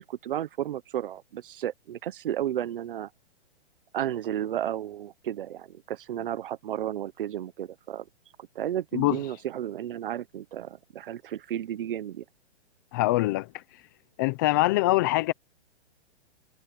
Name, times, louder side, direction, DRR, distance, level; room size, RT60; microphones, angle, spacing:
voice 1, 0.0-3.1 3.9-8.1 8.5-12.2, right 11 dB, 50° right, 1.1 m, -33 dB
voice 2, 12.9-13.6 14.2-15.3, left 18 dB, 20° left, 0.6 m, -24 dB
hypercardioid pair, 160°, 33 cm